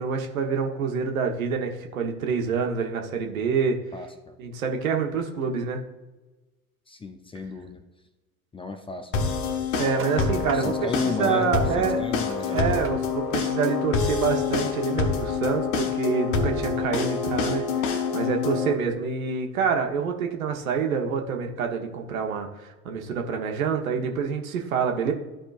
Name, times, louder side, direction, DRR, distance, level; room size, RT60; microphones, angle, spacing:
voice 1, 0.0-3.8 4.4-5.8 9.8-10.7 11.0-12.0 12.5-25.1, right 6 dB, 70° right, 3 dB, 1.2 m, -27 dB
voice 2, 3.9-4.4 6.9-7.8 8.5-9.3 10.5-12.8, left 3 dB, 15° left, 7 dB, 0.6 m, -34 dB
sound 1, 9.1-18.7, left 5 dB, 60° left, 1.0 m, -26 dB
sound 2, 9.9-15.7, right 5 dB, 30° right, 0.9 m, -43 dB
13.0 x 5.0 x 2.5 m, 1.1 s
figure-of-eight pair, 75°, 42 cm